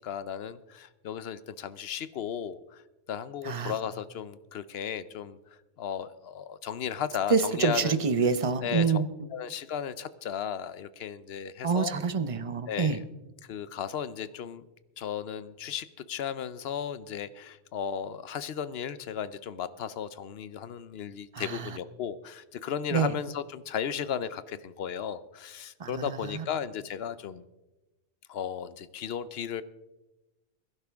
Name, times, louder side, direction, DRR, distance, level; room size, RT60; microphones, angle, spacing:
voice 1, 0.0-2.8 3.1-5.4 5.8-8.0 8.6-9.0 9.3-11.9 12.7-13.1 13.5-14.6 15.0-27.4 28.3-29.6, left 8 dB, 65° left, 15 dB, 0.9 m, -35 dB
voice 2, 7.3-9.1 11.6-13.0 21.3-21.6 22.9-23.1 25.8-26.4, right 5 dB, 35° right, 12 dB, 0.7 m, -27 dB
21.5 x 11.0 x 3.5 m, 1.0 s
omnidirectional pair, 1.1 m